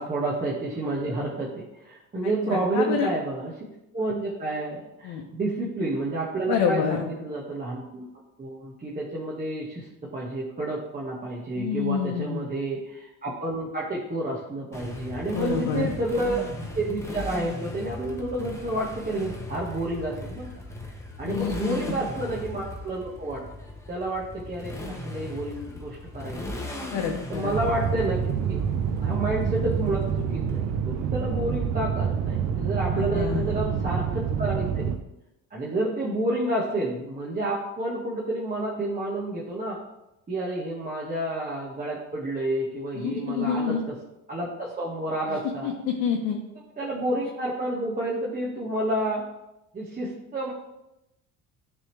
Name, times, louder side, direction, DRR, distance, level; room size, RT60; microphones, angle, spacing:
voice 1, 0.0-3.6 3.9-8.1 8.4-9.9 10.1-20.5 21.2-23.5 23.9-26.7 27.3-28.7 29.0-34.9 35.5-39.8 40.3-43.9 44.3-45.7 46.5-49.3 49.7-50.5, right 2 dB, 25° right, -5 dB, 1.4 m, -30 dB
voice 2, 2.5-3.1 5.0-5.2 6.5-7.0 11.6-12.4 15.3-15.9 21.2-22.0 26.9-27.5 32.9-33.6 43.0-43.8 45.6-46.4, left 7 dB, 70° left, 0 dB, 0.9 m, -27 dB
Motorcycle, 14.7-30.5, left 1 dB, 10° left, 1.0 m, -38 dB
sound 1, 27.5-35.0, right 7 dB, 50° right, 0.7 m, -27 dB
9.7 x 3.6 x 3.2 m, 0.92 s
cardioid pair, 105°, 35 cm